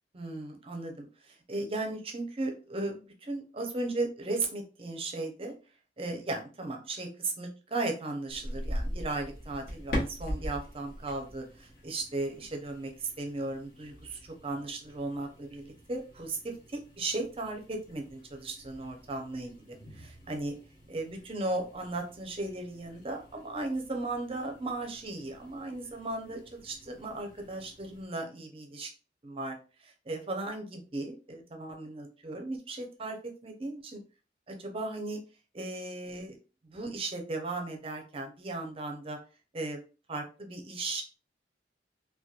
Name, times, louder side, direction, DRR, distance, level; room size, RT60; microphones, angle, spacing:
voice 1, 0.1-5.5 6.0-20.5 20.9-28.9 29.2-34.0 34.5-35.2 35.5-36.4 36.6-39.2 39.5-39.8 40.1-41.0, right 2 dB, 30° right, 3 dB, 0.6 m, -36 dB
sound 1, 8.3-28.1, equal, 50° left, 1.1 m, -43 dB
2.9 x 2.2 x 2.3 m, 0.34 s
head